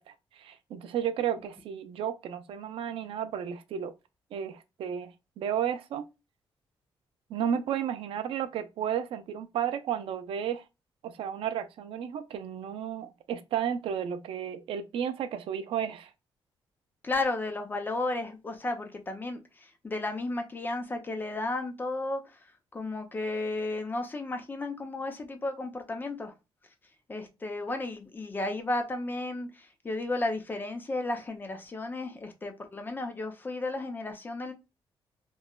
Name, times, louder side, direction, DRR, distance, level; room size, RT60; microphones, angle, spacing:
voice 1, 0.0-3.9 4.3-5.1 5.4-6.1 7.3-10.6 11.0-16.1, right 9 dB, 80° right, 0.4 m, -33 dB
voice 2, 17.0-22.2 22.7-26.3 27.1-34.5, left 2 dB, 20° left, 0.5 m, -33 dB
3.0 x 2.1 x 2.2 m
cardioid pair, 140°, 9 cm